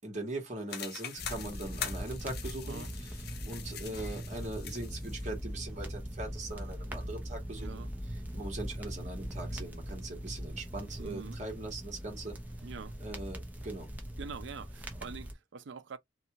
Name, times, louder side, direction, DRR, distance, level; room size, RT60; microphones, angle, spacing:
voice 1, 0.0-3.2 3.4-7.9 8.3-12.4 13.0-13.9, right 2 dB, 40° right, 1.3 m, -41 dB
sound 1, 0.7-5.3, left 8 dB, 55° left, 0.6 m, -43 dB
sound 2, 1.2-15.3, equal, 10° right, 0.6 m, -41 dB
voice 2, 7.6-7.9 11.0-11.4 12.6-13.0 14.2-16.0, right 5 dB, 75° right, 0.4 m, -44 dB
2.6 x 2.3 x 2.8 m
head